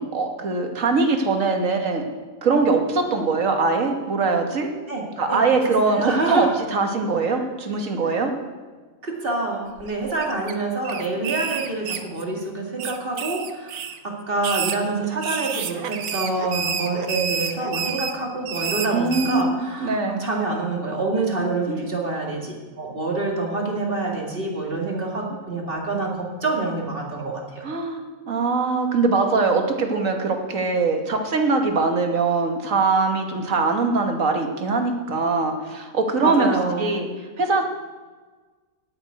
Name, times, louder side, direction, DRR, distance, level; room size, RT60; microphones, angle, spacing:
voice 1, 0.0-2.1 2.4-4.7 5.2-8.3 18.9-20.2 21.7-21.8 27.6-36.5 36.8-37.1 37.4-37.6, right 4 dB, 65° right, 4 dB, 1.8 m, -22 dB
voice 2, 4.9-5.4 5.9-6.5 9.0-27.7 36.2-37.0, right 3 dB, 40° right, -1 dB, 2.4 m, -27 dB
sound 1, 9.8-10.5 10.8-12.4 12.8-14.0 14.4-19.4, right 7 dB, 90° right, 1.3 m, -29 dB
8.8 x 8.5 x 9.4 m, 1.4 s
omnidirectional pair, 1.5 m